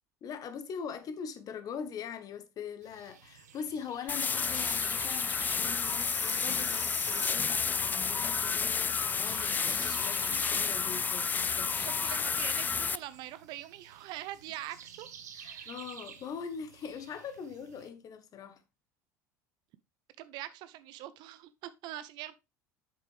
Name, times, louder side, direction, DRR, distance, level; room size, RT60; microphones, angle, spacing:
voice 1, 0.2-11.9 15.3-18.6, left 7 dB, 40° left, 1.3 m, -42 dB
sound 1, 2.8-17.9, right 7 dB, 75° right, 1.0 m, -50 dB
sound 2, 4.1-13.0, left 5 dB, 20° left, 0.3 m, -31 dB
voice 2, 11.8-15.1 15.4-15.8 20.2-22.3, right 14 dB, 55° right, 0.6 m, -43 dB
8.1 x 6.2 x 3.4 m
figure-of-eight pair, 70°, 9 cm